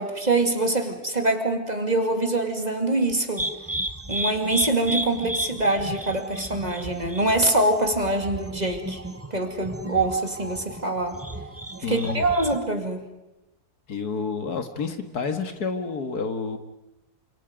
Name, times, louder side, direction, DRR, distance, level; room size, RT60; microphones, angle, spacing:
voice 1, 0.0-3.5 4.1-9.0 9.3-11.2 11.9-13.1, right 2 dB, 25° right, 5 dB, 2.5 m, -24 dB
sound 1, 3.4-12.6, right 1 dB, 10° right, 1.0 m, -34 dB
voice 2, 11.8-12.2 13.9-16.6, left 5 dB, 75° left, 7 dB, 2.3 m, -29 dB
29.0 x 27.0 x 5.2 m, 0.95 s
omnidirectional pair, 1.7 m